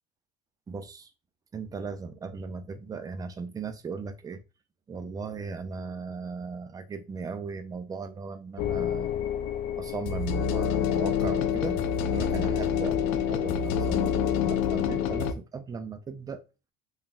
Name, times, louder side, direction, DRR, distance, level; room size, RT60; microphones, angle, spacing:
voice 1, 0.7-1.1 1.5-4.4 4.9-9.1 9.8-11.8 12.1-16.4, right 5 dB, 15° right, 0.3 m, -37 dB
sound 1, 8.6-15.3, left 8 dB, 65° left, 0.6 m, -27 dB
3.7 x 2.8 x 2.3 m
cardioid pair, 125°, 30 cm